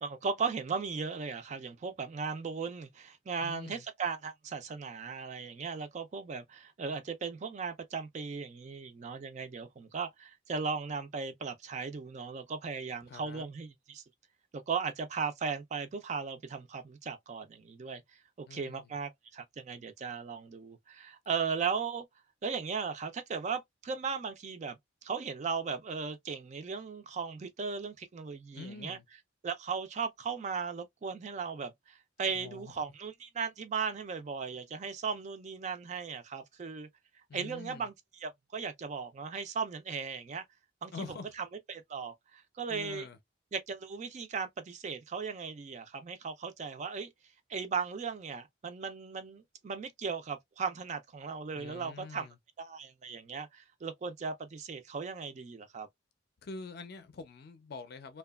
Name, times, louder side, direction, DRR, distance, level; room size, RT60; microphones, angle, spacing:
voice 1, 0.0-14.0 14.5-18.0 18.4-22.0 22.4-24.8 25.0-29.0 29.4-36.9 37.3-37.9 38.2-40.4 40.8-40.9 41.7-43.1 43.5-47.1 47.5-52.3 52.6-55.9, right 5 dB, 40° right, 0.4 m, -37 dB
voice 2, 3.4-3.8 13.0-13.5 18.5-18.9 28.5-29.1 32.2-32.8 37.3-37.9 40.9-41.3 42.7-43.2 51.5-52.4 56.4-58.2, left 4 dB, 55° left, 0.4 m, -45 dB
2.7 x 2.2 x 2.2 m
head